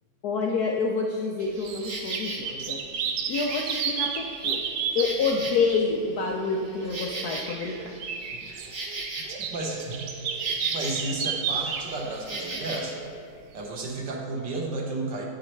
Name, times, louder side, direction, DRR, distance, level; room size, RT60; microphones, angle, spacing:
voice 1, 0.2-2.8 3.3-4.6 4.9-7.9, left 4 dB, 75° left, 0 dB, 0.8 m, -28 dB
sound 1, 1.4-5.5 6.2-13.2 13.8-13.9, right 6 dB, 90° right, 0.8 m, -32 dB
Insect, 1.5-2.4 2.9-5.9 6.3-11.2 11.4-12.9, right 2 dB, 40° right, 1.1 m, -38 dB
voice 2, 9.4-10.2 10.7-13.0 13.5-15.2, right 2 dB, 60° right, 0 dB, 1.6 m, -33 dB
9.2 x 8.6 x 3.2 m, 2.1 s
omnidirectional pair, 2.3 m